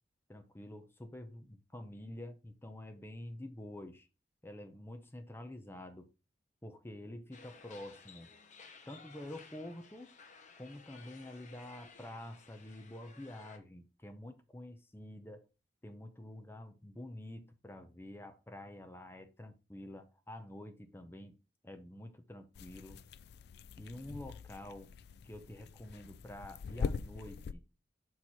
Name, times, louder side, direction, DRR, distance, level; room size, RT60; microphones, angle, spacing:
voice 1, 0.3-4.1 4.4-6.1 6.6-8.3 8.9-10.1 10.6-15.5 15.8-21.3 21.6-23.0 23.8-24.9 25.2-27.6, left 1 dB, 15° left, 0.7 m, -48 dB
sound 1, 7.3-13.6, left 5 dB, 45° left, 1.0 m, -57 dB
sound 2, 22.6-27.5, left 5 dB, 60° left, 0.3 m, -42 dB
6.5 x 4.4 x 4.2 m
head